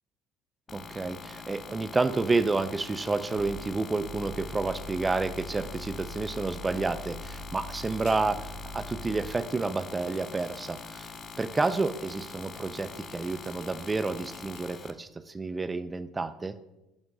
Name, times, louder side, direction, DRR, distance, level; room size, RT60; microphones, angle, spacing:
sound 1, 0.7-14.9, left 5 dB, 35° left, 0.5 m, -44 dB
voice 1, 0.7-11.1 11.4-16.5, right 3 dB, 20° right, 12 dB, 0.3 m, -30 dB
sound 2, 3.3-9.5, left 1 dB, 85° right, 0.8 m, -43 dB
sound 3, 7.7-8.4 10.0-14.6, left 4 dB, 70° left, 1.9 m, -54 dB
10.5 x 3.6 x 2.6 m, 0.94 s
hypercardioid pair, 75°, 0 cm